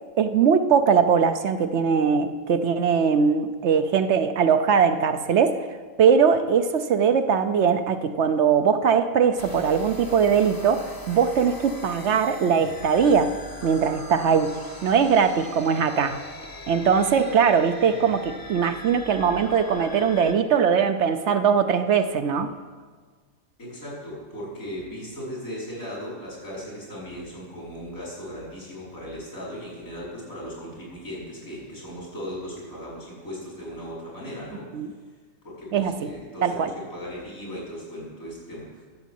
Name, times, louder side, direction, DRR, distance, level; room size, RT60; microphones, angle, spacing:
voice 1, 0.2-5.7 6.0-13.3 13.6-14.5 14.8-16.2 16.7-22.5 34.7-34.9 35.7-36.1 36.4-36.7, right 6 dB, 65° right, 9 dB, 0.9 m, -21 dB
sound 1, 9.4-20.3, left 2 dB, 20° left, 0.8 m, -41 dB
voice 2, 23.6-34.7 35.4-38.8, equal, 90° left, -5 dB, 5.4 m, -37 dB
12.0 x 7.3 x 7.6 m, 1.5 s
omnidirectional pair, 1.4 m